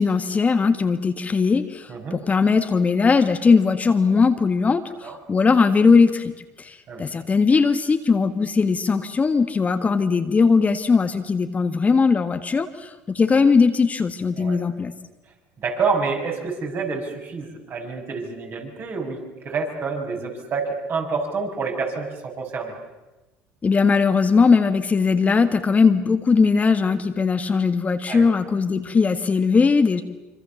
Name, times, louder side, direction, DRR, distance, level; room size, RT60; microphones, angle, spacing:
voice 1, 0.0-14.9 23.6-30.0, left 5 dB, 30° left, 8 dB, 1.7 m, -19 dB
voice 2, 1.9-2.2 5.0-5.2 6.9-7.0 14.4-14.6 15.6-19.2 19.4-22.7 28.1-28.3, right 4 dB, 45° right, 1 dB, 7.2 m, -28 dB
25.5 x 25.0 x 7.2 m, 1.1 s
supercardioid pair, 80°, 5 cm